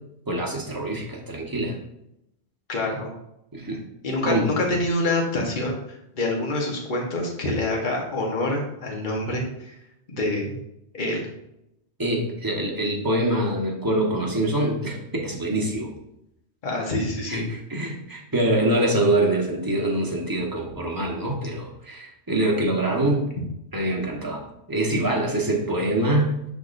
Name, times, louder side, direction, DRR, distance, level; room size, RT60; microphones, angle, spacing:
voice 1, 0.3-1.7 3.5-3.8 4.2-4.5 12.0-15.9 17.3-23.3 23.7-24.4 24.7-26.5, right 1 dB, 20° right, -1 dB, 1.1 m, -24 dB
voice 2, 2.7-3.1 4.0-5.8 6.1-9.7 10.1-10.5 10.9-11.3 16.6-17.4, left 2 dB, 45° left, -1 dB, 1.3 m, -26 dB
10.5 x 3.6 x 2.6 m, 0.82 s
omnidirectional pair, 1.1 m